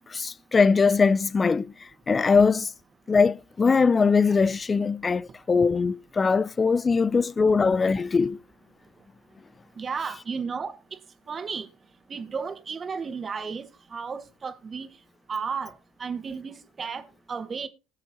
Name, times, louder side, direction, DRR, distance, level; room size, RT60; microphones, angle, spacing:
voice 1, 0.1-1.7 2.1-2.7 3.1-8.4, left 5 dB, 30° left, 0.5 m, -21 dB
voice 2, 9.8-10.8 11.3-11.7 12.1-14.9 15.3-15.7 16.0-17.7, right 5 dB, 40° right, 1.8 m, -33 dB
20.0 x 6.9 x 2.8 m
hypercardioid pair, 60°, 0 cm